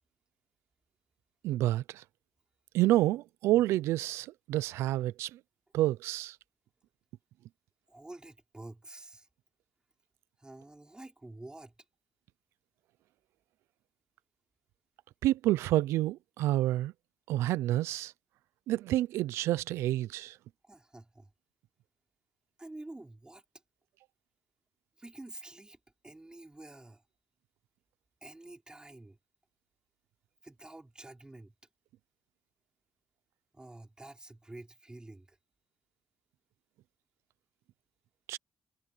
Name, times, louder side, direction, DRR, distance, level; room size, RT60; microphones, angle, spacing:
voice 1, 1.4-2.0 2.7-5.4 5.7-6.4 15.2-16.9 17.3-18.1 18.7-20.4 38.3-38.4, right 15 dB, 85° right, 0.6 m, -28 dB
voice 2, 7.9-9.3 10.4-11.7 20.6-21.3 22.6-23.4 25.0-25.8 26.0-27.0 28.2-29.2 30.4-31.5 33.5-35.4, right 2 dB, 20° right, 5.4 m, -49 dB
supercardioid pair, 50°, 4 cm